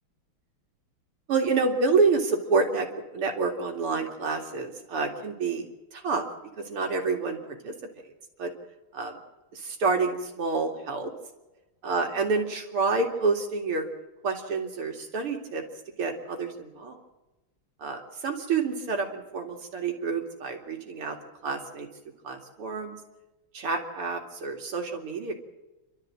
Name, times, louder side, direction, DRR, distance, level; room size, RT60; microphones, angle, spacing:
voice 1, 1.3-5.7 5.9-6.3 6.6-7.7 8.4-8.5 8.9-9.1 9.5-11.1 11.8-13.9 14.2-15.6 16.0-17.0 17.8-21.2 21.4-21.9 22.2-23.0 23.5-25.3, right 4 dB, 80° right, 3 dB, 3.3 m, -28 dB
29.0 x 13.0 x 7.6 m, 1.1 s
omnidirectional pair, 2.4 m